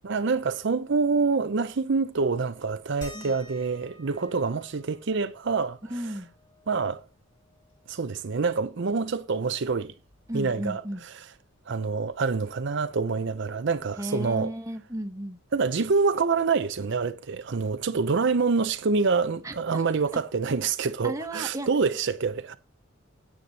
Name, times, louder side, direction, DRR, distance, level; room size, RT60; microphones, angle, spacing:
voice 1, 0.0-6.2 6.7-7.0 7.9-9.9 10.3-11.3 11.7-14.5 15.5-22.5, right 4 dB, 60° right, 0.6 m, -26 dB
sound 1, 3.0-8.1 8.5-8.6 8.9-10.7 11.9-12.0 12.8-12.9, left 1 dB, 20° left, 3.9 m, -51 dB
voice 2, 5.9-6.3 10.3-11.0 14.0-15.4 19.4-19.8 21.0-21.7, right 1 dB, 15° right, 1.2 m, -34 dB
9.4 x 8.9 x 4.1 m
head